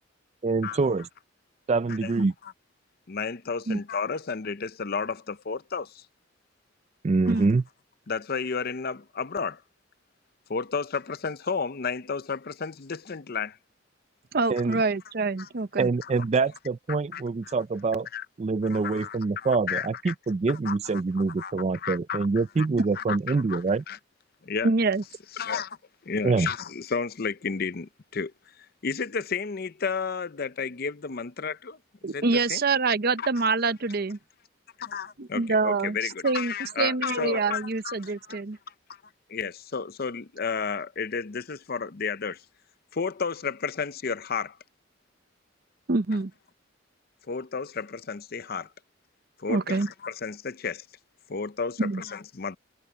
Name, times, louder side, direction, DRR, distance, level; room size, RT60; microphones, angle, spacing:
voice 1, 0.4-1.1 1.7-2.3 7.0-7.6 14.5-14.8 15.8-18.1 18.4-23.8 26.2-26.5, right 4 dB, 35° right, 0.3 m, -25 dB
voice 2, 3.1-6.0 8.1-9.6 10.5-13.6 15.4-15.5 17.1-17.5 18.1-18.3 18.7-20.1 20.5-21.0 21.4-22.3 22.6-22.7 22.9-24.0 24.4-24.7 25.3-25.8 26.1-28.3 28.8-31.8 32.1-32.2 32.5-32.6 33.2-33.3 34.8-38.4 39.3-42.4 42.9-44.6 47.3-48.7 49.4-50.9 51.3-52.6, left 5 dB, 50° left, 0.6 m, -32 dB
voice 3, 14.3-15.9 24.6-25.0 32.0-34.2 35.2-38.6 45.9-46.3 49.5-49.9 51.8-52.0, right 3 dB, 50° right, 0.7 m, -26 dB
head